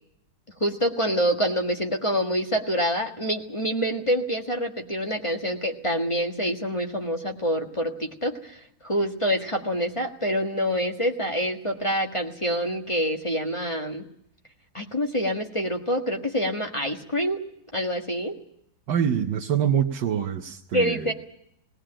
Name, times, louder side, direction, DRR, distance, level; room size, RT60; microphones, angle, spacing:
voice 1, 0.6-14.1 14.7-17.4 17.7-18.4 20.7-21.1, equal, 15° left, 3 dB, 1.6 m, -26 dB
voice 2, 18.9-21.1, right 8 dB, 70° right, 0 dB, 1.7 m, -25 dB
19.0 x 18.5 x 8.8 m, 0.73 s
omnidirectional pair, 2.0 m